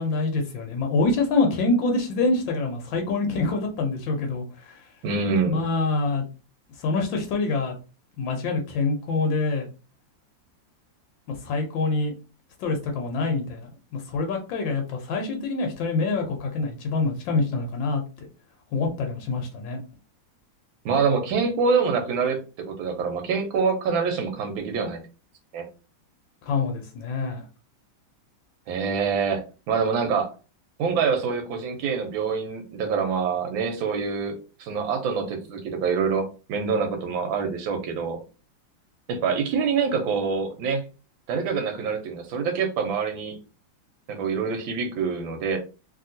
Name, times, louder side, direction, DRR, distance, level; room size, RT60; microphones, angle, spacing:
voice 1, 0.0-4.8 5.4-6.3 6.8-7.8 8.2-9.7 11.3-12.1 12.6-18.3 18.7-19.8 26.5-27.4, left 3 dB, 80° left, 2 dB, 1.4 m, -26 dB
voice 2, 5.0-5.6 20.8-25.0 25.5-25.6 28.7-30.3 30.8-38.2 39.1-40.9 41.3-43.4 44.1-45.6, right 5 dB, 85° right, 5 dB, 1.5 m, -26 dB
3.0 x 2.8 x 2.6 m, 0.33 s
omnidirectional pair, 2.1 m